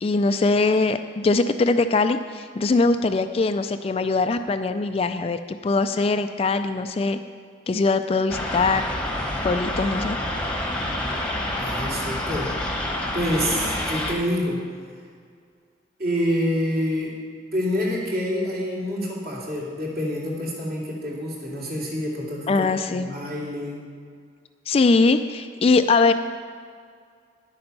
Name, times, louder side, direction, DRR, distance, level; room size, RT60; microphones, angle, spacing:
voice 1, 0.0-7.2 7.7-8.9 9.4-10.2 22.5-23.1 24.7-26.1, left 3 dB, 30° left, 9 dB, 0.3 m, -21 dB
sound 1, 8.3-14.1, left 1 dB, 5° left, 1.0 m, -28 dB
voice 2, 11.6-12.5 13.1-14.6 16.0-17.1 17.5-23.8, equal, 50° right, -5 dB, 2.8 m, -27 dB
10.5 x 8.7 x 5.4 m, 2.1 s
head